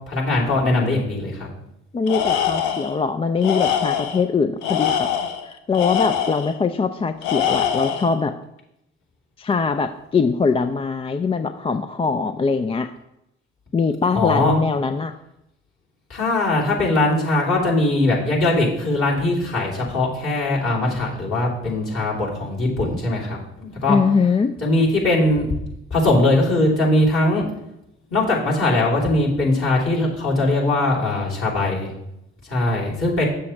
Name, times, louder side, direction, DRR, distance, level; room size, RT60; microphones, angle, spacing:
voice 1, 0.1-1.5 14.1-14.5 16.1-24.0 24.6-25.5 25.9-27.5 28.1-31.9 32.5-33.2, left 2 dB, 45° left, -5 dB, 3.1 m, -20 dB
voice 2, 1.9-5.1 5.5-8.3 9.4-12.9 13.7-15.1 23.9-24.6, left 5 dB, 20° left, 9 dB, 0.4 m, -22 dB
Tools, 2.1-3.0 3.4-4.2 4.6-6.5 7.2-8.2, left 9 dB, 70° left, 0.7 m, -23 dB
7.6 x 6.9 x 3.2 m, 0.84 s
figure-of-eight pair, 45°, 32 cm